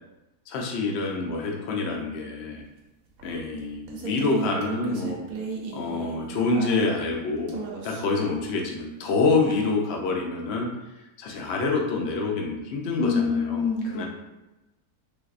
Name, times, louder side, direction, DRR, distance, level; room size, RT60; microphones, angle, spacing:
voice 1, 0.5-2.6 3.2-5.2 5.7-7.6 7.8-10.7 11.2-13.7 13.9-14.0, left 3 dB, 85° left, 0 dB, 0.5 m, -26 dB
sound 1, 3.2-7.1 7.5-8.2 9.5-9.6, right 5 dB, 70° right, 1.0 m, -35 dB
voice 2, 12.9-14.1, left 5 dB, 60° left, -2 dB, 0.9 m, -26 dB
3.3 x 2.6 x 2.4 m, 0.98 s
omnidirectional pair, 1.7 m